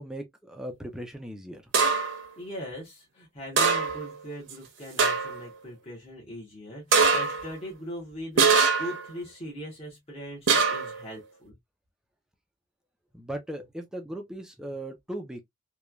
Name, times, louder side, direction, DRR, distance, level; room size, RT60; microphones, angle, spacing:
voice 1, 0.0-1.6 13.1-15.4, right 1 dB, 5° right, 0.4 m, -38 dB
sound 1, 1.7-2.2 3.6-4.1 4.5-4.6 5.0-5.4 6.9-7.5 8.4-9.0 10.5-11.0, right 5 dB, 65° right, 0.7 m, -22 dB
voice 2, 2.4-11.6, equal, 30° left, 1.0 m, -40 dB
3.1 x 2.2 x 2.3 m
head